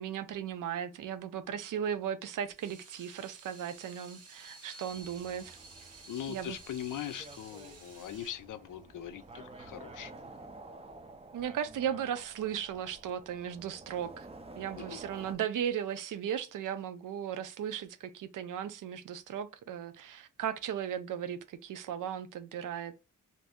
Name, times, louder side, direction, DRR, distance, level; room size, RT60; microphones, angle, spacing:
voice 1, 0.0-5.6 6.3-6.6 11.3-14.3 14.6-23.0, right 9 dB, 85° right, 0.5 m, -36 dB
Water tap faucet / Sink (filling or washing), 2.4-10.4, right 3 dB, 55° right, 0.7 m, -53 dB
sound 1, 4.9-15.3, right 2 dB, 20° right, 0.3 m, -51 dB
voice 2, 6.1-10.1 14.8-15.0, left 10 dB, 85° left, 0.5 m, -41 dB
2.6 x 2.6 x 3.4 m
wide cardioid pair, 175°, 31 cm